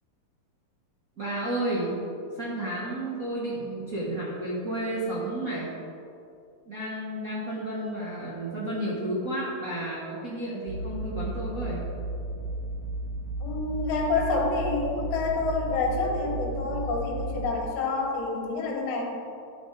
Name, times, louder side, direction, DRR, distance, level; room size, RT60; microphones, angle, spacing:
voice 1, 1.2-2.0 2.3-5.7 6.7-11.8, right 1 dB, 40° right, -8 dB, 1.3 m, -32 dB
sound 1, 10.7-17.5, right 2 dB, 60° right, 1.7 m, -34 dB
voice 2, 13.4-19.0, left 3 dB, 80° left, -1 dB, 2.6 m, -28 dB
11.5 x 4.7 x 4.8 m, 2.7 s
omnidirectional pair, 3.5 m